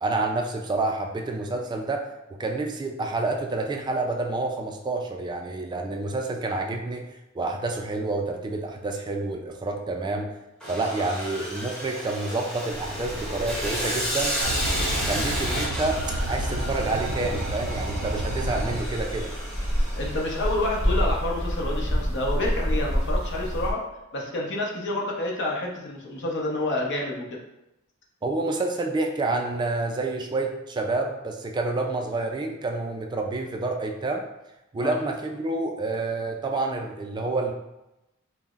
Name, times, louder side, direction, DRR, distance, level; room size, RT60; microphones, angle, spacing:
voice 1, 0.0-2.1 2.4-7.1 7.3-10.3 10.7-19.3 28.2-34.2 34.7-37.5, right 2 dB, 20° right, 3 dB, 0.3 m, -28 dB
Sawing, 10.6-20.9, equal, 5° left, 0.8 m, -33 dB
sound 1, 12.7-23.7, equal, 20° left, 1.3 m, -30 dB
sound 2, 14.4-18.8, right 1 dB, 90° right, 0.4 m, -30 dB
voice 2, 19.9-23.8 24.1-27.4 34.8-35.0, left 2 dB, 60° left, -1 dB, 0.8 m, -29 dB
5.4 x 2.1 x 2.4 m, 0.93 s
head